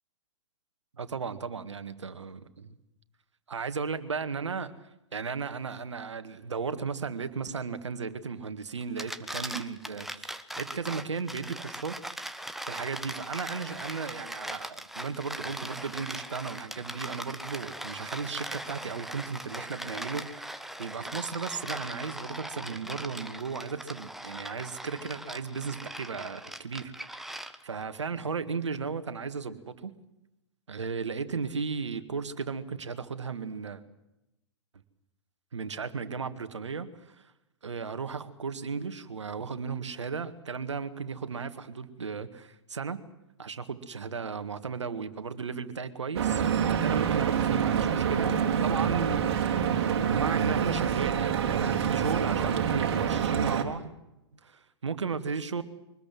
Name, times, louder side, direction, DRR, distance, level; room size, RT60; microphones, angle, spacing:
voice 1, 1.0-2.8 3.5-4.7 5.1-12.0 12.7-29.9 30.7-33.8 35.5-37.3 37.6-43.0 43.4-53.9 54.3-55.6, right 5 dB, 75° right, 11 dB, 2.0 m, -35 dB
sound 1, 8.8-27.8, right 1 dB, ahead, 1.3 m, -40 dB
Stream / Boat Water vehicle, 46.2-53.6, right 8 dB, 55° right, 3.5 m, -27 dB
24.0 x 20.5 x 7.7 m, 0.91 s
figure-of-eight pair, 110°, 15 cm